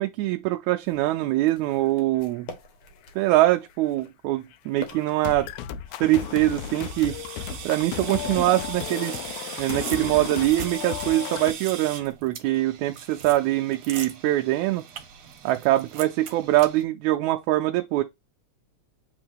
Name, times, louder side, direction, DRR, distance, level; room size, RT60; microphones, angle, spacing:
voice 1, 0.0-2.5 3.2-5.5 6.0-7.2 7.7-9.3 9.6-14.8 15.4-18.0, right 16 dB, 85° right, 1.9 m, -23 dB
sound 1, 0.9-9.1, left 4 dB, 55° left, 1.7 m, -47 dB
sound 2, 4.5-4.6 4.9-11.5, left 11 dB, 85° left, 2.0 m, -34 dB
sound 3, 5.9-16.8, right 8 dB, 65° right, 2.0 m, -39 dB
7.7 x 3.6 x 3.5 m
omnidirectional pair, 3.3 m